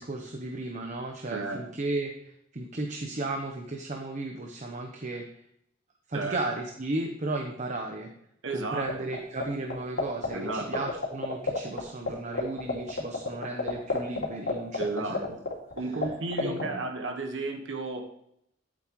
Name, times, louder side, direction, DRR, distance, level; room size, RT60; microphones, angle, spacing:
voice 1, 0.0-5.4 6.1-8.1 8.5-15.3 15.9-16.0 16.4-16.9, right 2 dB, 40° right, 2 dB, 1.0 m, -35 dB
voice 2, 1.3-1.6 6.1-6.4 8.4-9.1 10.3-10.8 14.8-15.4 15.7-18.0, right 2 dB, 85° right, 4 dB, 1.4 m, -33 dB
sound 1, 8.9-9.4 9.7-11.8 12.1-12.2 12.3-16.1 16.3-16.7, left 3 dB, 85° left, 2.8 m, -28 dB
12.5 x 7.8 x 3.1 m, 0.75 s
head